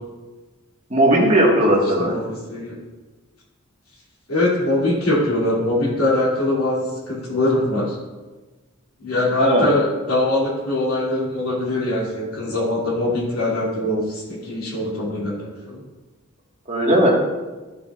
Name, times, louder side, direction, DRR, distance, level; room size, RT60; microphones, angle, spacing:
voice 1, 0.9-2.1 9.4-9.7 16.7-17.1, right 1 dB, 30° right, -3 dB, 1.6 m, -17 dB
voice 2, 1.7-2.8 4.3-8.0 9.0-15.8, left 1 dB, 85° left, -5 dB, 2.7 m, -22 dB
11.0 x 6.8 x 2.5 m, 1.2 s
head